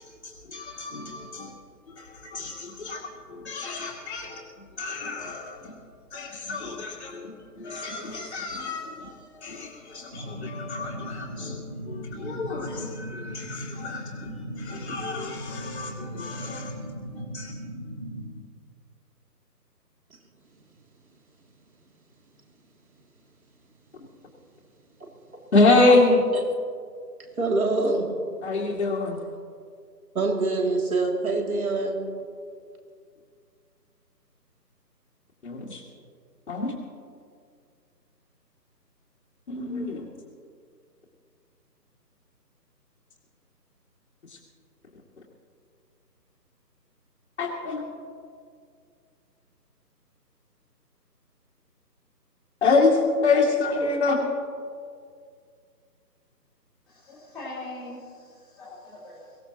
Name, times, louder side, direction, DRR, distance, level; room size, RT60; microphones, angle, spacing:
voice 1, 0.2-1.5 1.9-3.0 3.3-4.4 4.8-5.8 6.1-16.7 17.1-17.5 25.5-26.2 28.4-29.2 35.4-35.8 36.5-36.8 39.5-40.1 47.4-47.8 52.6-54.2, left 3 dB, 45° left, -6 dB, 2.4 m, -26 dB
sound 1, 10.1-18.3, equal, 20° right, 0.8 m, -38 dB
voice 2, 27.4-28.1 30.1-32.0, right 3 dB, 55° right, 1 dB, 3.0 m, -24 dB
voice 3, 56.9-59.4, left 2 dB, ahead, -15 dB, 2.7 m, -41 dB
23.0 x 16.5 x 3.0 m, 2.2 s
figure-of-eight pair, 155°, 50 cm